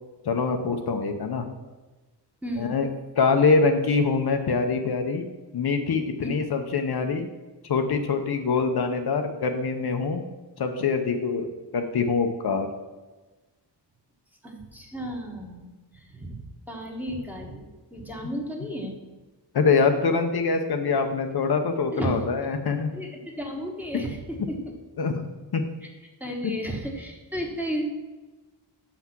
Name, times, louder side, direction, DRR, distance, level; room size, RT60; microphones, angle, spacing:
voice 1, 0.3-1.4 2.6-2.9 3.2-5.2 5.5-7.3 7.7-10.2 10.6-11.5 11.7-12.7 19.5-22.9 25.0-25.2 25.5-25.6, left 4 dB, 60° left, 5 dB, 0.8 m, -24 dB
voice 2, 2.4-2.7 6.2-6.3 14.4-17.7 17.9-19.0 21.9-22.3 22.9-24.7 25.8-25.9 26.2-27.8, equal, 5° right, 0 dB, 1.3 m, -33 dB
7.0 x 5.9 x 6.0 m, 1.2 s
wide cardioid pair, 140°, 43 cm